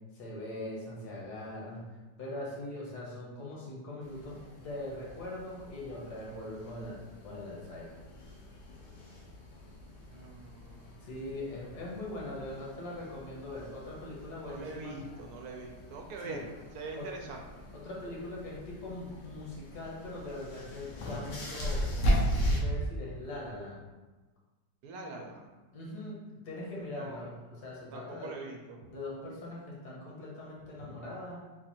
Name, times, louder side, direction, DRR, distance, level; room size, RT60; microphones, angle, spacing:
voice 1, 0.1-1.9 2.2-8.0 11.0-15.0 16.2-16.4 16.9-17.1 17.7-21.9 22.3-23.8 25.7-28.3 28.9-31.4, left 1 dB, 70° left, -4 dB, 1.7 m, -41 dB
sound 1, 4.0-22.6, equal, 85° left, 1.6 m, -38 dB
voice 2, 10.1-11.0 14.4-17.7 24.8-25.5 27.0-27.3 27.9-28.8 30.8-31.0, right 3 dB, 75° right, 1 dB, 1.1 m, -43 dB
4.5 x 2.5 x 4.3 m, 1.2 s
omnidirectional pair, 1.8 m